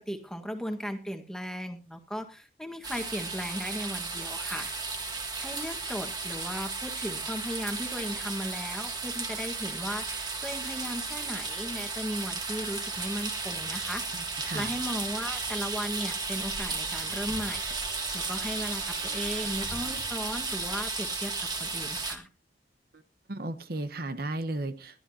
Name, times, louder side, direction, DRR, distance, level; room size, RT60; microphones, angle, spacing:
voice 1, 0.0-4.7 5.4-14.0 14.5-22.3, equal, 5° left, 5 dB, 1.5 m, -36 dB
sound 1, 2.8-22.2, right 4 dB, 25° right, 1.8 m, -34 dB
Screech, 16.5-20.7, right 6 dB, 75° right, 3.2 m, -48 dB
voice 2, 23.3-25.0, right 2 dB, 55° right, 11 dB, 1.0 m, -34 dB
21.0 x 12.5 x 2.8 m, 0.33 s
head